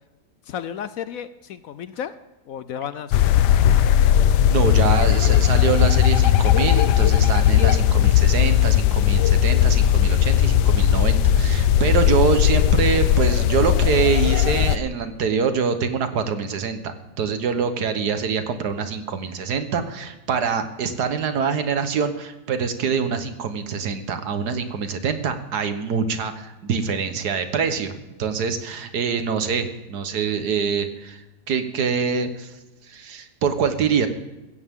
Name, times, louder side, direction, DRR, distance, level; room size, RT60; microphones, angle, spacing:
voice 1, 0.5-2.1 2.5-3.4, left 8 dB, 70° left, 13 dB, 0.9 m, -33 dB
sound 1, 3.1-14.8, left 10 dB, 85° left, 1.2 m, -17 dB
voice 2, 4.5-32.5 32.9-34.1, right 6 dB, 75° right, 9 dB, 1.7 m, -25 dB
16.5 x 15.0 x 3.7 m, 1.0 s
omnidirectional pair, 1.8 m